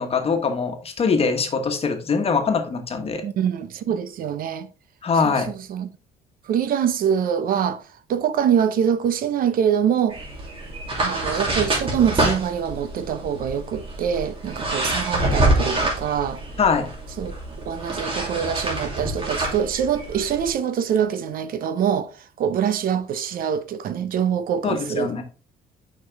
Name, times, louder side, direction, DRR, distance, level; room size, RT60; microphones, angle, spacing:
voice 1, 0.0-3.2 5.0-5.5 16.6-16.9 24.6-25.2, left 5 dB, 35° left, 1.3 m, -22 dB
voice 2, 3.2-4.7 5.2-5.9 6.5-7.8 8.1-10.2 11.0-16.4 17.2-17.3 17.6-22.1 22.4-25.2, right 8 dB, 60° right, 0.6 m, -24 dB
sound 1, 10.1-20.5, right 2 dB, 30° right, 2.6 m, -26 dB
6.5 x 5.2 x 3.4 m
cardioid pair, 110°, 17 cm